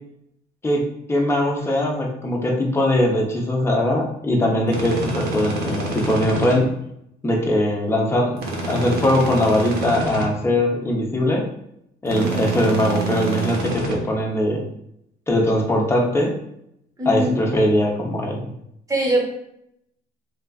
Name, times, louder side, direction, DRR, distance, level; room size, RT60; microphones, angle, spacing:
voice 1, 1.1-6.7 7.2-8.4 8.7-11.5 12.0-14.6 15.3-16.3 17.1-18.5, left 1 dB, 15° left, 0 dB, 0.6 m, -21 dB
sound 1, 4.7-6.6 8.4-10.3 12.1-14.0, right 2 dB, 70° right, 0.8 m, -27 dB
voice 2, 17.0-17.4 18.9-19.2, right 1 dB, 20° right, -1 dB, 0.9 m, -21 dB
3.2 x 2.4 x 2.3 m, 0.76 s
cardioid pair, 110°, 17 cm